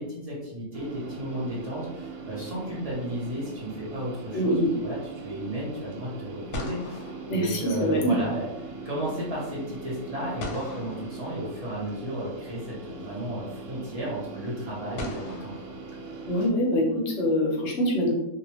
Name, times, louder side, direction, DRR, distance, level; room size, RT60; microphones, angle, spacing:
voice 1, 0.0-8.5 8.8-15.5, right 1 dB, 50° right, -5 dB, 0.4 m, -34 dB
sound 1, 0.7-16.5, right 2 dB, 65° right, 0.8 m, -41 dB
sound 2, 1.0-1.9 6.0-6.1 6.5-8.2 10.4-12.0 13.3-13.4 15.0-16.6, left 2 dB, 85° left, 1.2 m, -42 dB
voice 2, 4.3-4.7 7.3-8.2 16.3-18.1, equal, 60° left, -1 dB, 0.8 m, -24 dB
2.6 x 2.1 x 2.9 m, 0.90 s
omnidirectional pair, 1.6 m